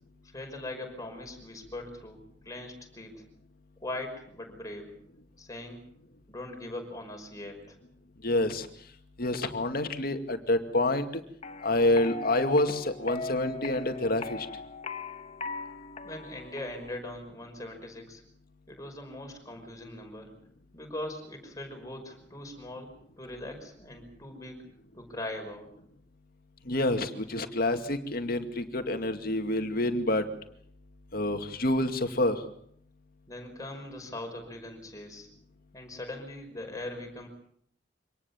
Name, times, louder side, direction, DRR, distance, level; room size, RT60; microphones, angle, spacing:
voice 1, 0.3-3.2 3.8-4.9 5.4-5.8 6.3-7.8 16.0-18.2 18.7-20.3 20.7-24.6 24.9-25.7 33.3-35.3 35.7-37.3, left 1 dB, 20° left, 3 dB, 5.6 m, -41 dB
voice 2, 8.2-8.7 9.2-11.2 11.6-14.5 26.7-30.3 31.1-32.4, left 1 dB, 55° left, 7 dB, 2.3 m, -27 dB
sound 1, 11.4-17.0, left 3 dB, 35° left, 1.2 m, -40 dB
25.5 x 19.0 x 7.2 m, 0.66 s
head